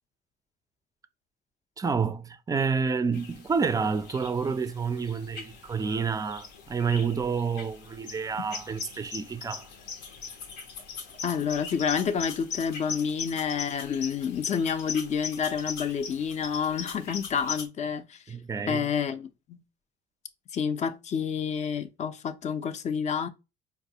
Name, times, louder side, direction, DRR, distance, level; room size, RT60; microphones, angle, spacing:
voice 1, 1.8-9.7 18.3-18.9, right 5 dB, 20° right, 0.3 m, -29 dB
sound 1, 3.1-17.7, left 6 dB, 80° left, 0.8 m, -40 dB
voice 2, 11.2-18.2 18.7-19.6 20.5-23.3, left 7 dB, 45° left, 0.5 m, -29 dB
4.6 x 2.3 x 2.7 m
cardioid pair, 110°, 17 cm